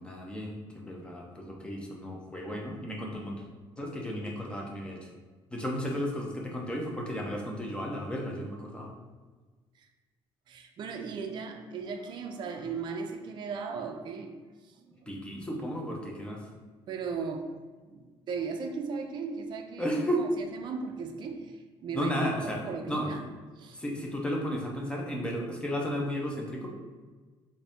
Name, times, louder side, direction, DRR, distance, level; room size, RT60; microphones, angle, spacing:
voice 1, 0.0-3.4 3.8-5.1 5.5-8.9 15.1-16.5 19.8-20.2 21.9-23.1 23.7-26.7, equal, 10° left, -1 dB, 0.6 m, -34 dB
voice 2, 10.5-14.3 14.6-15.0 16.9-17.5 17.9-19.9 20.1-22.1 22.4-23.2 23.6-23.8, right 5 dB, 45° right, 4 dB, 0.4 m, -37 dB
3.9 x 2.6 x 3.5 m, 1.4 s
cardioid pair, 140°, 10 cm